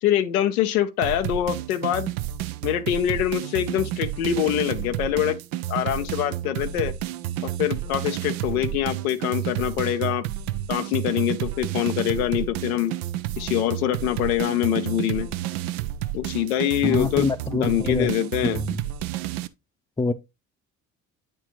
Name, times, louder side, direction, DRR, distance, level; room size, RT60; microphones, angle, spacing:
voice 1, 0.0-2.1 2.6-5.4 5.7-6.9 7.4-10.2 10.7-12.9 13.4-15.3 16.1-18.6, left 11 dB, 90° left, 0.6 m, -24 dB
sound 1, 1.0-19.5, right 13 dB, 80° right, 0.6 m, -30 dB
voice 2, 16.8-18.1 18.5-18.8 20.0-20.1, left 3 dB, 10° left, 0.6 m, -25 dB
8.8 x 4.5 x 3.0 m
hypercardioid pair, 50°, 43 cm